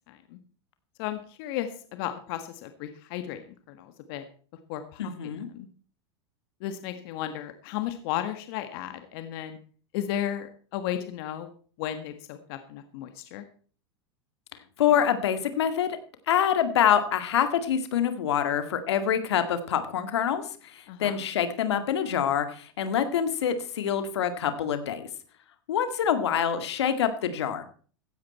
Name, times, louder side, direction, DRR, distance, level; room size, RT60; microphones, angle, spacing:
voice 1, 0.1-0.4 1.0-4.2 4.7-5.7 6.6-9.6 9.9-11.5 11.8-13.4 20.9-21.2, left 11 dB, 65° left, 9 dB, 1.7 m, -34 dB
voice 2, 5.0-5.5 14.8-16.0 16.3-25.1 25.7-27.6, left 9 dB, 85° left, 9 dB, 2.0 m, -26 dB
15.5 x 10.5 x 4.3 m, 0.42 s
hypercardioid pair, 115°, 14 cm